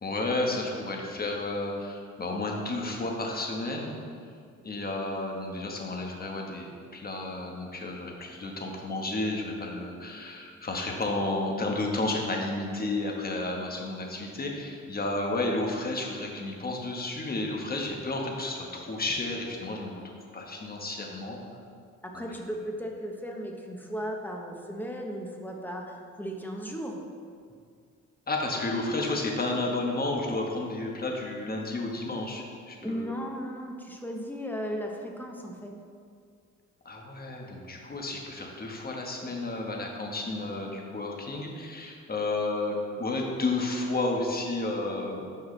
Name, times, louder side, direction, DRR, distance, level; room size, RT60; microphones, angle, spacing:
voice 1, 0.0-4.0 4.6-19.9 20.3-21.4 22.1-22.2 28.3-33.2 36.8-45.3, left 2 dB, 30° left, 0 dB, 1.3 m, -32 dB
voice 2, 22.0-27.0 32.8-35.7, equal, 5° left, 1 dB, 1.1 m, -36 dB
12.5 x 4.7 x 3.3 m, 2.2 s
cardioid pair, 90°, 30 cm